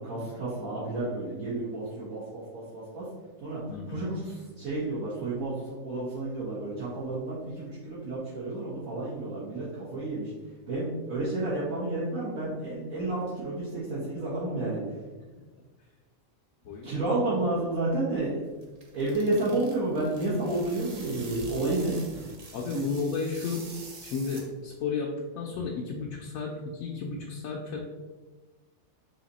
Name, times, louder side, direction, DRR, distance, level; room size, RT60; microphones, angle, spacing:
voice 1, 0.0-3.1 3.4-3.6 3.9-10.3 10.7-14.8 16.8-18.4 18.9-22.3 22.7-22.8, right 2 dB, 80° right, -11 dB, 1.9 m, -31 dB
voice 2, 3.7-4.0 16.6-17.0 22.5-23.6 24.0-25.1 25.4-27.8, left 5 dB, 80° left, -2 dB, 1.0 m, -33 dB
sound 1, 18.4-24.8, right 3 dB, 45° right, 0.5 m, -46 dB
4.1 x 2.8 x 4.0 m, 1.3 s
omnidirectional pair, 1.4 m